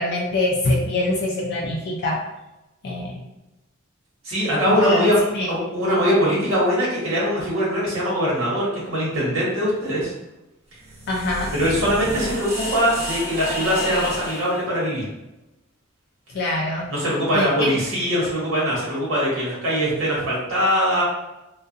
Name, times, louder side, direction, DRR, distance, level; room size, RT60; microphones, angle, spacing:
voice 1, 0.0-2.2 2.8-3.2 4.7-5.0 5.3-5.5 11.1-11.5 16.3-16.9 17.3-17.7, left 1 dB, 50° left, -2 dB, 0.3 m, -24 dB
voice 2, 4.2-5.1 5.5-10.1 11.5-15.0 16.9-21.0, equal, 80° right, -6 dB, 1.1 m, -22 dB
sound 1, 10.7-14.6, equal, 30° right, 0.9 m, -31 dB
2.3 x 2.2 x 2.7 m, 0.97 s
head